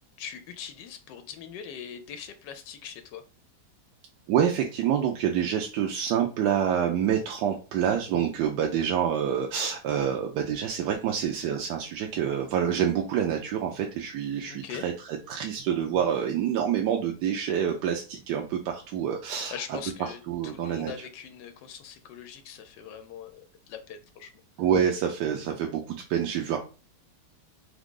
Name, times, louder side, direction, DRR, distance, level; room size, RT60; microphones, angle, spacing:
voice 1, 0.2-3.2 14.5-14.8 19.5-24.3, left 8 dB, 85° left, 8 dB, 1.2 m, -41 dB
voice 2, 4.3-14.9 15.3-20.9 24.6-26.6, right 8 dB, 75° right, 2 dB, 1.2 m, -27 dB
3.7 x 3.5 x 3.7 m, 0.34 s
omnidirectional pair, 1.9 m